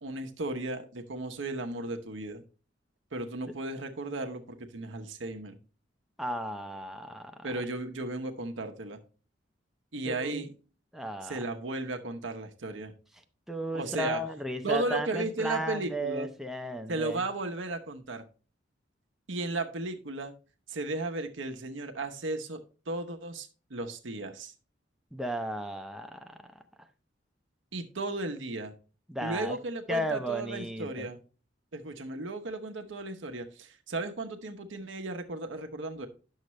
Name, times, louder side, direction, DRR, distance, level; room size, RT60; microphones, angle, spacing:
voice 1, 0.0-2.4 3.1-5.6 7.4-9.0 9.9-10.5 11.2-12.9 13.7-14.2 14.6-16.3 16.9-18.2 19.3-20.3 20.7-24.5 27.7-28.7 29.2-31.2 31.7-36.1, right 2 dB, 75° right, 0.9 m, -35 dB
voice 2, 6.2-7.3 10.1-10.4 10.9-11.4 13.5-17.2 25.1-26.3 29.1-29.6 29.9-31.1, right 1 dB, ahead, 0.6 m, -34 dB
9.6 x 6.6 x 3.1 m
head